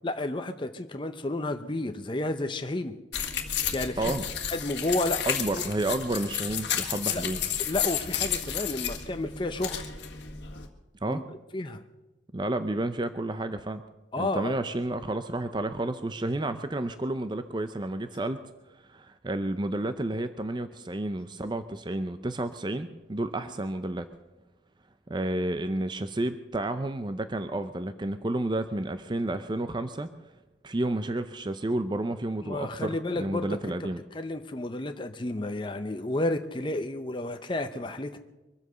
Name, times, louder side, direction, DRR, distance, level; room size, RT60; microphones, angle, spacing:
voice 1, 0.0-3.0 3.7-4.1 4.5-5.2 5.5-5.6 7.1-7.2 7.6-9.9 11.1-11.2 11.5-11.8 14.1-14.6 32.4-33.9 34.1-38.2, left 2 dB, 25° left, 7 dB, 0.6 m, -31 dB
sound 1, 3.1-10.7, left 9 dB, 60° left, 1.7 m, -32 dB
voice 2, 5.3-7.4 11.0-11.2 12.3-13.8 14.2-18.4 18.9-24.1 25.1-30.1 30.6-34.0, right 1 dB, 25° right, 10 dB, 0.5 m, -31 dB
23.5 x 7.9 x 6.7 m, 1.1 s
head